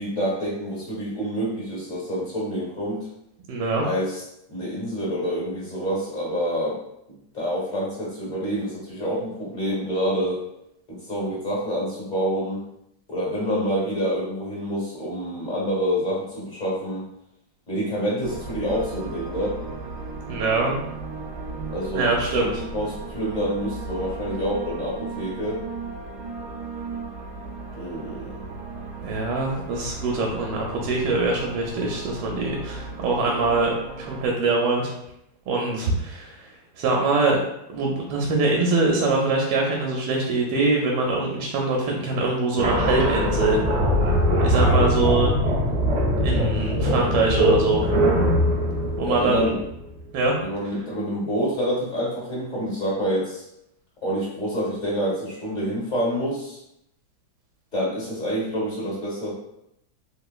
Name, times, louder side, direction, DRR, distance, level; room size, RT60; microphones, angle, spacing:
voice 1, 0.0-3.1 3.8-4.2 4.5-6.8 7.3-10.4 10.9-12.6 13.1-17.1 17.7-19.6 21.7-25.6 27.7-28.4 49.0-49.6 50.4-53.4 54.0-56.6 57.7-59.3, equal, 30° left, -6 dB, 1.0 m, -27 dB
voice 2, 3.5-3.8 20.3-20.7 21.9-22.5 29.0-34.9 35.5-36.5 36.8-37.4 37.7-43.7 44.4-45.3 46.2-47.8 49.0-49.5 50.1-50.3, right 3 dB, 85° right, 0 dB, 1.2 m, -23 dB
sound 1, 18.2-34.3, right 4 dB, 70° right, 1.1 m, -36 dB
sound 2, 42.6-50.0, equal, 55° right, 0.8 m, -22 dB
3.3 x 2.9 x 2.3 m, 0.80 s
omnidirectional pair, 1.9 m